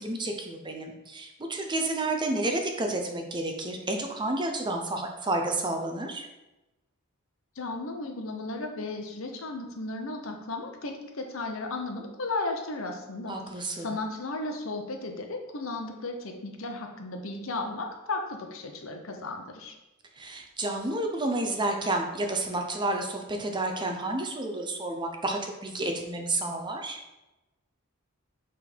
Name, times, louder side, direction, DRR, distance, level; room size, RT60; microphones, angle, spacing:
voice 1, 0.0-6.3 13.3-13.9 20.2-27.0, right 2 dB, 20° right, 3 dB, 0.6 m, -30 dB
voice 2, 7.6-19.8, left 2 dB, 65° left, 3 dB, 0.9 m, -35 dB
6.0 x 3.6 x 4.5 m, 1.0 s
head